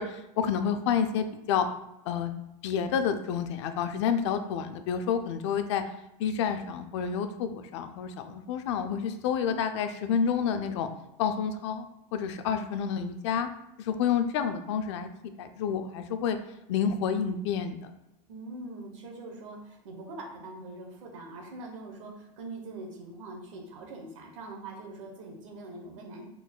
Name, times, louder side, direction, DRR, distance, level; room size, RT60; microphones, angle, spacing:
voice 1, 0.0-1.7 2.1-2.3 2.6-5.8 6.2-10.9 11.2-11.9 12.1-13.5 13.8-15.1 15.4-16.4 16.7-17.8, left 7 dB, 55° left, 9 dB, 0.4 m, -29 dB
voice 2, 18.3-26.2, right 2 dB, 65° right, 1 dB, 0.9 m, -43 dB
4.5 x 3.9 x 2.2 m, 0.86 s
supercardioid pair, 175°, 18 cm